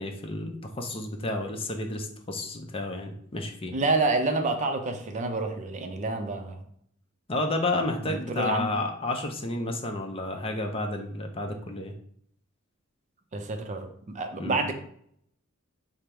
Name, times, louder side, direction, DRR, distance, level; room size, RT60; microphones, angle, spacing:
voice 1, 0.0-3.7 7.3-11.9 14.4-14.6, left 2 dB, 25° left, 4 dB, 0.5 m, -31 dB
voice 2, 3.7-6.7 8.0-8.7 13.3-14.7, right 3 dB, 35° right, 5 dB, 0.5 m, -28 dB
5.1 x 2.0 x 4.4 m, 0.66 s
head